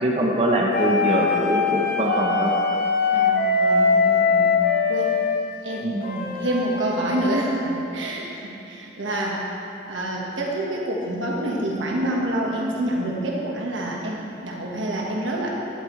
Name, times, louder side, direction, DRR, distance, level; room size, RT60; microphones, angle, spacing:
voice 1, 0.0-2.5 5.8-6.0, right 1 dB, 30° right, -2 dB, 0.7 m, -22 dB
sound 1, 0.7-5.4 6.0-7.4, left 4 dB, 50° left, 0.9 m, -22 dB
voice 2, 3.1-4.5 4.9-5.2 5.6-9.5 9.9-15.5, right 1 dB, 90° right, -3 dB, 1.4 m, -27 dB
11.0 x 8.1 x 3.2 m, 2.8 s
head